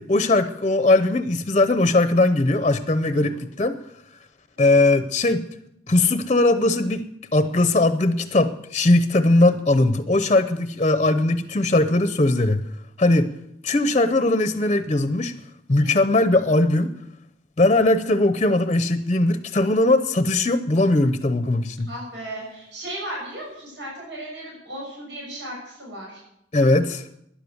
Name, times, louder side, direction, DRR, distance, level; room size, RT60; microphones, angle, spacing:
voice 1, 0.0-3.8 4.6-5.5 5.9-7.0 7.3-12.7 13.0-13.3 13.6-15.3 15.7-16.9 17.6-21.9 26.5-27.1, left 2 dB, 35° left, 10 dB, 0.7 m, -19 dB
voice 2, 21.9-26.2, right 1 dB, 85° right, -4 dB, 6.8 m, -36 dB
12.5 x 10.5 x 7.9 m, 0.79 s
head